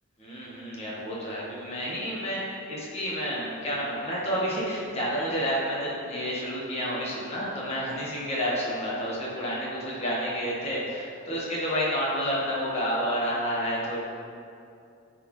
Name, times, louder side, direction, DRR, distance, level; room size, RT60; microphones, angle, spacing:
voice 1, 0.2-14.0, equal, 30° left, -6 dB, 1.4 m, -30 dB
9.2 x 4.2 x 3.1 m, 2.5 s
head